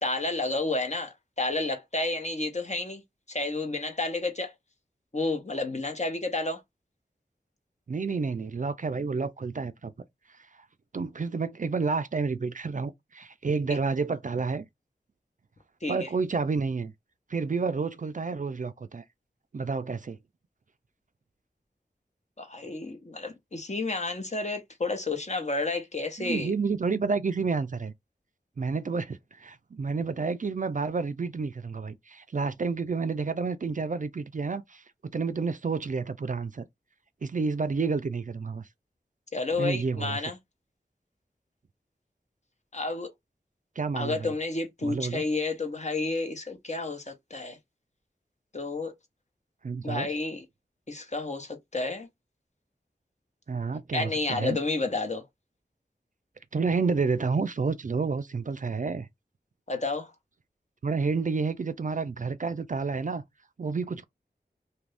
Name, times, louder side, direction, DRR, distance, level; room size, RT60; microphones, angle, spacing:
voice 1, 0.0-3.0 3.3-4.5 5.1-6.6 15.8-16.1 22.4-26.5 39.3-40.4 42.7-43.1 43.9-47.6 48.5-48.9 49.8-50.4 50.9-52.1 53.9-55.2 59.7-60.1, left 3 dB, 40° left, 0.9 m, -31 dB
voice 2, 7.9-9.9 10.9-14.7 15.9-16.9 17.3-19.0 19.5-20.2 26.2-27.9 28.6-34.8 35.1-36.6 37.2-38.7 39.6-40.2 43.8-44.3 44.8-45.2 49.6-50.1 53.5-54.6 56.5-59.1 60.8-63.2 63.6-64.0, right 4 dB, 45° right, 0.4 m, -30 dB
2.7 x 2.6 x 3.3 m
wide cardioid pair, 55°, 18 cm